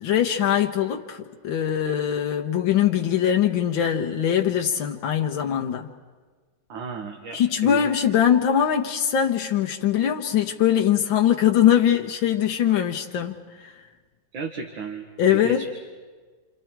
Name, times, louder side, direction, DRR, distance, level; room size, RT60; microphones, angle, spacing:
voice 1, 0.0-5.9 7.3-13.7 15.2-15.6, left 9 dB, 85° left, 3 dB, 1.7 m, -22 dB
voice 2, 6.7-8.0 14.3-15.7, right 4 dB, 80° right, 3 dB, 2.1 m, -34 dB
28.0 x 28.0 x 4.6 m, 1.4 s
omnidirectional pair, 2.1 m